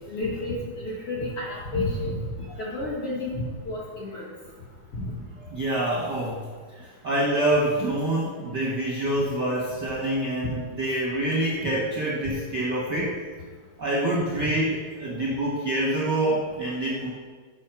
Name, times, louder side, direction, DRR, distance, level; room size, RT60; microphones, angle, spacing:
voice 1, 0.1-2.2 2.6-4.3 4.9-5.2, left 2 dB, 55° left, -5 dB, 1.7 m, -30 dB
voice 2, 5.5-6.4 6.7-13.2 13.8-17.1, right 1 dB, 55° right, -6 dB, 1.2 m, -26 dB
7.4 x 5.5 x 5.8 m, 1.5 s
omnidirectional pair, 3.9 m